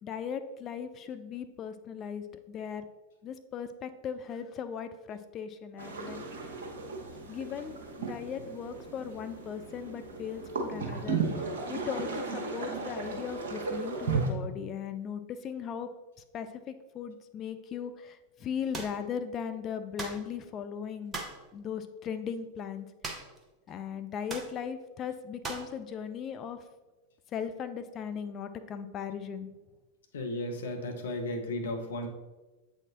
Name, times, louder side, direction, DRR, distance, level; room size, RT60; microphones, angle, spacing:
voice 1, 0.0-2.8 3.2-6.3 7.2-11.2 11.7-15.9 16.3-21.2 21.5-22.9 23.7-26.6 27.3-29.5, left 7 dB, 30° left, 10 dB, 0.4 m, -38 dB
sound 1, 5.8-14.3, right 4 dB, 60° right, 1.0 m, -35 dB
sound 2, 18.7-19.0 20.0-20.2 21.1-21.4 23.0-23.4 23.7-23.8 24.3-24.5 25.4-25.7, right 3 dB, 15° right, 0.9 m, -38 dB
voice 2, 30.1-32.1, left 1 dB, 65° left, 4 dB, 0.9 m, -34 dB
7.7 x 4.3 x 2.9 m, 1.1 s
figure-of-eight pair, 90°, 0 cm